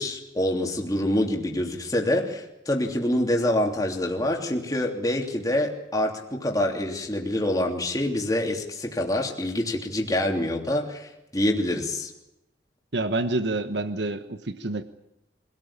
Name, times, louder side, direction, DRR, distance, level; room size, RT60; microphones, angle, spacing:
voice 1, 0.0-12.1, left 1 dB, 20° left, 1 dB, 3.1 m, -26 dB
voice 2, 12.9-14.8, right 2 dB, 70° right, 10 dB, 1.3 m, -27 dB
25.0 x 18.0 x 8.8 m, 0.89 s
head